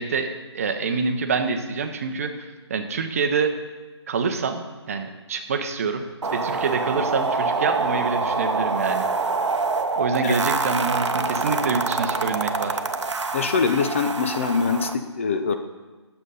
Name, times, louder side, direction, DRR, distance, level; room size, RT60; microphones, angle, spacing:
voice 1, 0.0-3.6 4.1-6.0 6.3-9.1 10.0-12.8, right 5 dB, 30° right, 6 dB, 0.7 m, -26 dB
sound 1, 6.2-14.9, right 4 dB, 85° right, 0.8 m, -25 dB
voice 2, 13.3-15.6, left 5 dB, 25° left, 7 dB, 0.5 m, -23 dB
9.0 x 6.9 x 5.4 m, 1.3 s
figure-of-eight pair, 160°, 15 cm